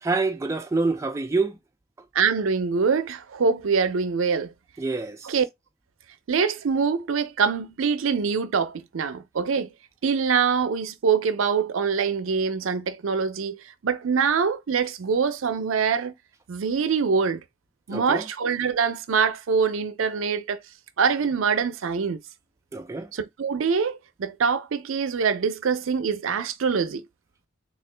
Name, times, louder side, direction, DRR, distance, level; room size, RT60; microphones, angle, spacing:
voice 1, 0.0-1.6 4.8-5.2 17.9-18.2 22.7-23.1, right 3 dB, 15° right, 0.3 m, -26 dB
voice 2, 2.1-4.5 5.2-5.5 6.3-9.7 10.0-16.1 16.5-17.4 17.9-20.6 21.0-22.2 23.1-27.0, right 6 dB, 75° right, 0.5 m, -24 dB
3.7 x 2.4 x 3.3 m
head